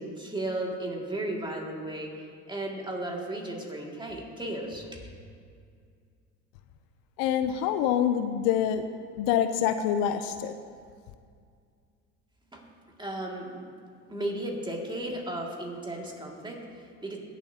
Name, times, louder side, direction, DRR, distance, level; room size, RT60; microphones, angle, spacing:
voice 1, 0.0-5.0 12.5-12.7 13.0-13.7 14.1-17.2, right 1 dB, 15° right, -1 dB, 2.2 m, -35 dB
voice 2, 7.2-8.9 9.2-10.6, left 9 dB, 70° left, 10 dB, 0.6 m, -26 dB
17.0 x 7.2 x 2.8 m, 2.2 s
supercardioid pair, 80°, 35 cm